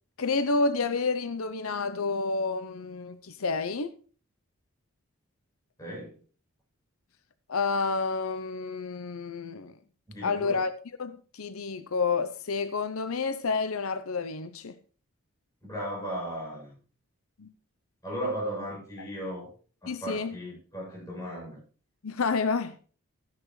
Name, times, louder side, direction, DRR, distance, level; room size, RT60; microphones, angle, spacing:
voice 1, 0.2-3.9 7.5-9.7 10.2-10.7 11.0-14.8 17.4-17.5 19.9-20.4 22.0-22.7, left 4 dB, 85° left, 0.7 m, -29 dB
voice 2, 5.8-6.2 10.1-10.6 15.6-16.8 18.0-19.5 19.8-21.6, equal, 15° left, 7.7 m, -36 dB
14.0 x 10.5 x 3.2 m
head